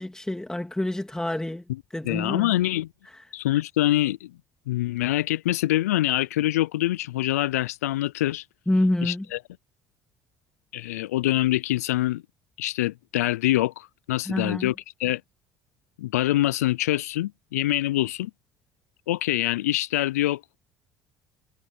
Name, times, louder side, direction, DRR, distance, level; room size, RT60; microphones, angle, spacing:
voice 1, 0.0-1.6 1.9-2.6 3.1-3.2 8.7-9.2 14.2-14.7, left 1 dB, 10° left, 2.6 m, -27 dB
voice 2, 2.0-2.9 3.3-4.3 4.7-8.5 9.0-9.4 10.7-12.2 12.6-14.7 15.0-15.2 16.0-18.3 19.1-20.6, left 15 dB, 90° left, 0.4 m, -25 dB
hypercardioid pair, 65°, 8 cm